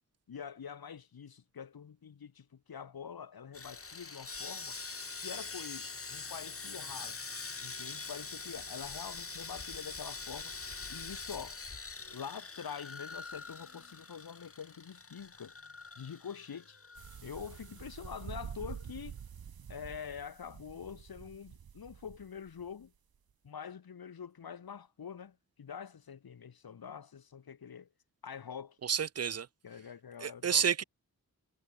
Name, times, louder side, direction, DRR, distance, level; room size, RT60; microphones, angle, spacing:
voice 1, 0.3-4.8 5.2-7.2 7.6-10.6 10.9-11.6 12.1-15.6 16.0-16.8 17.2-19.2 19.7-22.9 23.4-27.9 28.2-28.8 29.6-30.7, left 7 dB, 90° left, 3.5 m, -45 dB
Sawing, 3.5-17.8 18.0-18.2 18.7-18.8, left 4 dB, 40° left, 5.2 m, -44 dB
sound 1, 17.0-22.8, right 7 dB, 85° right, 2.2 m, -47 dB
voice 2, 28.8-29.5 30.2-30.8, right 7 dB, 45° right, 0.5 m, -30 dB
wide cardioid pair, 155°, 35 cm